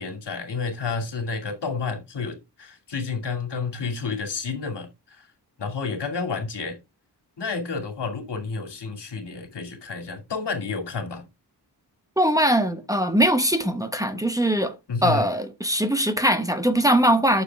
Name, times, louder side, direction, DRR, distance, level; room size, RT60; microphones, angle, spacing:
voice 1, 0.0-5.3 5.6-6.8 7.4-11.2 14.9-15.3, left 4 dB, 80° left, 2.6 m, -30 dB
voice 2, 12.2-14.7 15.0-17.4, right 1 dB, 10° right, 1.0 m, -21 dB
9.9 x 6.9 x 3.5 m
wide cardioid pair, 130°, 41 cm